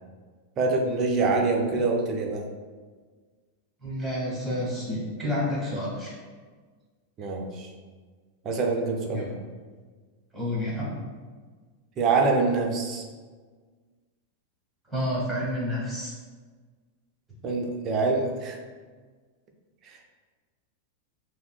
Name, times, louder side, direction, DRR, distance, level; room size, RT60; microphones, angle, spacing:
voice 1, 0.6-2.5 7.2-7.7 8.4-9.4 12.0-13.0 17.4-18.6 19.8-20.1, right 3 dB, 30° right, 1 dB, 0.5 m, -25 dB
voice 2, 3.8-6.1 9.1-9.3 10.3-11.0 14.9-16.1, left 1 dB, 5° right, -6 dB, 1.4 m, -29 dB
5.7 x 2.1 x 2.3 m, 1.5 s
figure-of-eight pair, 90°, 0 cm